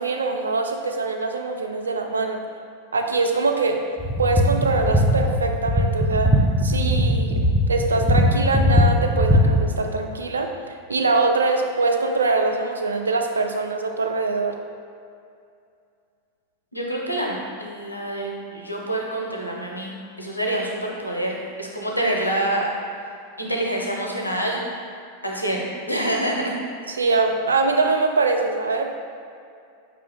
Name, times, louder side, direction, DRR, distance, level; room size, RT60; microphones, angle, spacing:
voice 1, 0.0-2.4 2.9-3.8 4.2-6.4 6.6-7.3 7.7-10.5 10.9-14.6 26.9-28.9, right 3 dB, 75° right, 3 dB, 0.3 m, -23 dB
sound 1, 4.0-9.7, equal, 5° left, 0.4 m, -20 dB
voice 2, 16.7-19.9 20.2-22.7 23.4-24.6 25.2-26.6, right 1 dB, 85° left, -1 dB, 0.5 m, -26 dB
4.7 x 2.4 x 3.3 m, 2.4 s
figure-of-eight pair, 90°, 0 cm